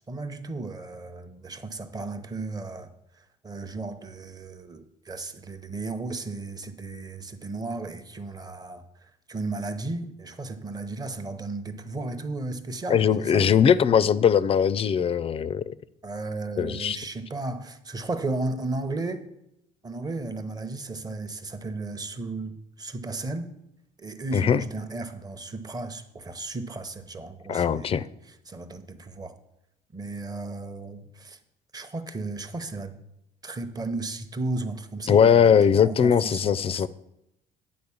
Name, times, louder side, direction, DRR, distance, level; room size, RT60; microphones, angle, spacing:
voice 1, 0.1-13.5 16.0-19.3 19.8-23.5 24.0-29.3 29.9-31.4 31.7-33.0 33.4-36.9, right 2 dB, 25° right, 0.8 m, -35 dB
voice 2, 12.9-15.7 16.6-17.0 24.3-24.6 27.5-28.0 35.1-36.9, left 7 dB, 35° left, 0.4 m, -20 dB
9.5 x 4.1 x 7.1 m
cardioid pair, 110°, 17 cm